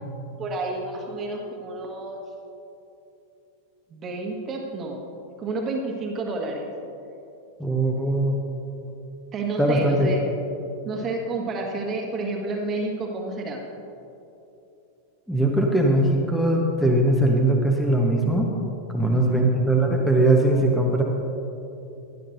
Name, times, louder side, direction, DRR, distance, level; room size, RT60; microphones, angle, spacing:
voice 1, 0.4-2.2 3.9-5.0 5.4-6.7 9.3-10.2 10.8-13.6 19.0-19.5, right 2 dB, 25° right, 1 dB, 1.5 m, -30 dB
voice 2, 7.6-8.4 9.6-10.1 15.3-18.6 18.9-21.0, right 1 dB, ahead, -1 dB, 1.1 m, -20 dB
16.5 x 12.0 x 2.7 m, 2.9 s
figure-of-eight pair, 90°, 0 cm